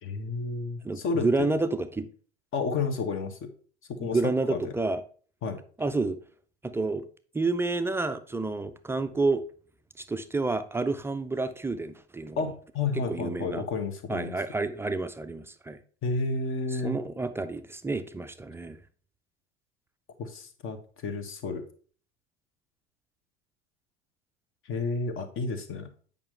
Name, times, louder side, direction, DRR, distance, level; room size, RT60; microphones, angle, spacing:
voice 1, 0.0-1.5 2.5-3.5 3.9-4.2 4.5-4.7 5.4-5.6 12.4-14.3 16.0-17.0 20.2-21.6 24.6-25.9, left 4 dB, 40° left, 1.3 m, -31 dB
voice 2, 0.8-2.1 4.0-5.0 5.8-6.2 6.6-7.0 7.3-9.4 10.1-12.4 13.1-13.6 14.1-15.8 16.8-18.8, right 3 dB, 5° right, 0.4 m, -29 dB
8.7 x 5.3 x 3.3 m
figure-of-eight pair, 75°, 33 cm